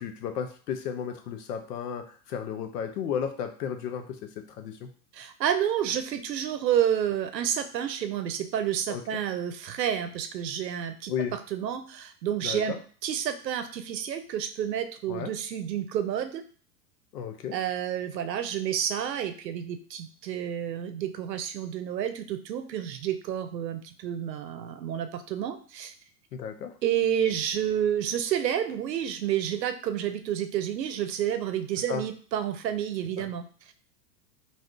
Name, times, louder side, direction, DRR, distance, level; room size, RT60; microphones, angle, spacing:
voice 1, 0.0-4.9 8.9-9.0 11.1-11.3 12.4-12.8 15.1-15.3 17.1-17.6 26.3-26.7 31.9-32.0 33.2-33.3, left 7 dB, 70° left, 6 dB, 0.8 m, -33 dB
voice 2, 5.1-16.4 17.5-25.9 26.8-33.7, right 9 dB, 90° right, 9 dB, 0.7 m, -30 dB
2.6 x 2.4 x 3.4 m, 0.42 s
hypercardioid pair, 120°, 49 cm